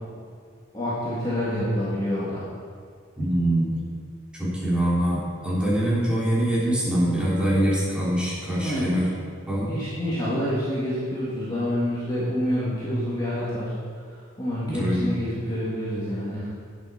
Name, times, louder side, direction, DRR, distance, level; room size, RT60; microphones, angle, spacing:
voice 1, 0.7-2.4 8.5-9.1 9.7-13.7 14.1-16.5, equal, 20° left, -9 dB, 2.0 m, -27 dB
voice 2, 3.2-3.7 4.4-9.0 9.4-9.7 14.7-15.1, right 1 dB, 5° right, -9 dB, 3.2 m, -24 dB
9.1 x 8.1 x 5.7 m, 2.1 s
head